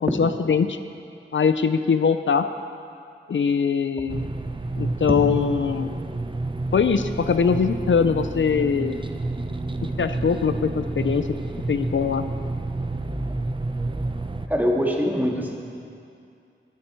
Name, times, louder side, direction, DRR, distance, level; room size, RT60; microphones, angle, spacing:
voice 1, 0.0-0.8 1.3-2.5 3.3-4.2 4.8-5.9 6.7-9.0 10.0-11.4 11.7-12.2, left 6 dB, 70° left, 9 dB, 0.5 m, -22 dB
sound 1, 4.1-14.5, right 2 dB, 25° right, 0.7 m, -30 dB
voice 2, 14.5-15.5, equal, 10° right, -1 dB, 2.0 m, -23 dB
20.0 x 9.6 x 4.5 m, 2.4 s
wide cardioid pair, 60°, 21 cm